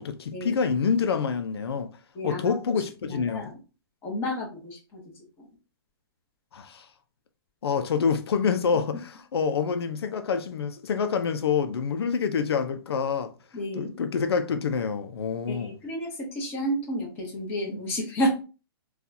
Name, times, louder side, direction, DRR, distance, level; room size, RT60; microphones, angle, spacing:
voice 1, 0.0-1.9 2.2-3.5 6.5-6.9 7.6-13.3 13.7-15.8, left 6 dB, 90° left, 0.5 m, -27 dB
voice 2, 2.1-2.5 3.0-3.6 4.0-5.0 13.5-13.9 15.5-18.4, equal, 15° left, 1.1 m, -31 dB
4.0 x 2.4 x 2.7 m
hypercardioid pair, 165°, 13 cm